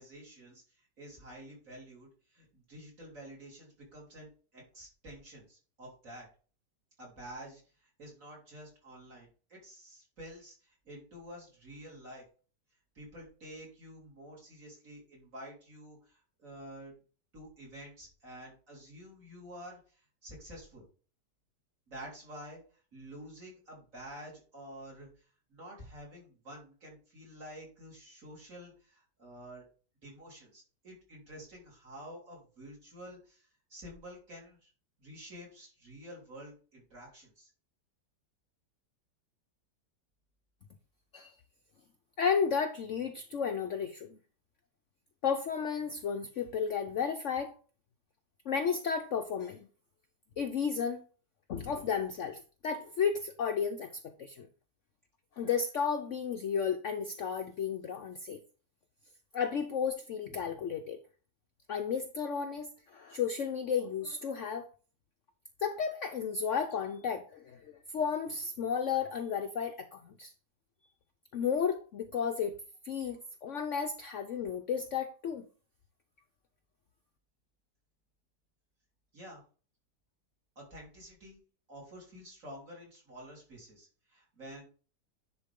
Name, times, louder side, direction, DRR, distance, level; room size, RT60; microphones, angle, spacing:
voice 1, 0.0-6.3 7.0-12.2 13.0-16.9 17.3-20.9 21.9-22.6 22.9-25.2 25.5-29.6 30.0-34.7 35.0-37.5 79.1-79.4 80.6-81.4 81.7-84.6, equal, 50° right, -4 dB, 3.9 m, -49 dB
voice 2, 42.2-44.2 45.2-47.5 48.5-49.7 50.4-51.0 51.5-54.5 55.4-58.4 59.3-61.0 61.7-64.7 65.6-70.3 71.3-72.6 72.8-75.4, left 6 dB, 60° left, 6 dB, 0.8 m, -33 dB
10.0 x 4.5 x 3.6 m, 0.38 s
omnidirectional pair, 1.9 m